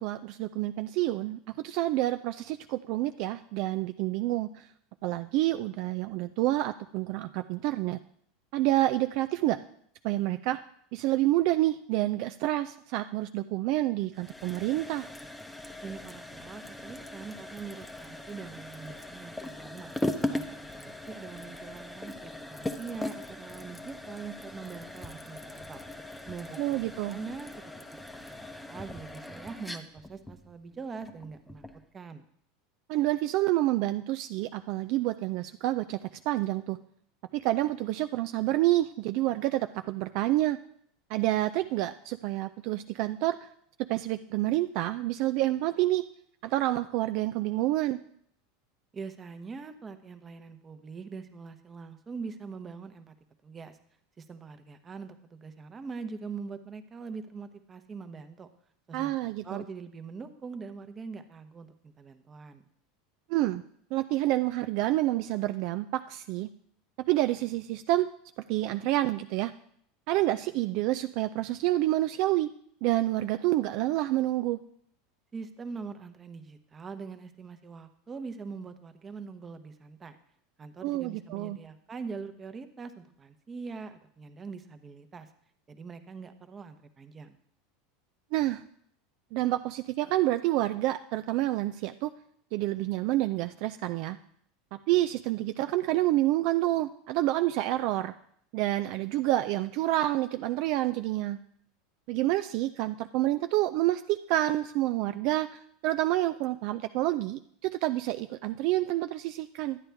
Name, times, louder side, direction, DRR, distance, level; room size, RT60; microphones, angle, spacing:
voice 1, 0.0-4.7 5.0-8.0 8.5-9.6 10.0-10.6 10.9-15.1 26.6-27.2 32.9-36.0 36.3-36.8 37.3-40.6 41.1-43.5 43.9-46.0 46.4-48.0 58.9-59.6 63.3-63.6 63.9-66.5 67.1-68.1 68.5-69.5 70.1-72.5 72.8-74.6 80.8-81.6 88.3-88.6 89.3-92.1 92.5-94.2 94.7-98.1 98.5-101.4 102.1-109.8, right 16 dB, 60° right, 10 dB, 0.3 m, -28 dB
sound 1, 14.1-31.8, left 1 dB, 5° left, 0.8 m, -39 dB
voice 2, 15.8-19.9 20.3-25.9 26.3-26.8 27.1-31.6 31.9-32.2 48.9-53.1 53.4-53.8 54.2-58.5 58.9-62.6 75.3-80.2 80.6-85.3 85.7-87.4, right 5 dB, 25° right, 9 dB, 0.9 m, -43 dB
11.0 x 9.0 x 3.4 m, 0.67 s
hypercardioid pair, 100°, 0 cm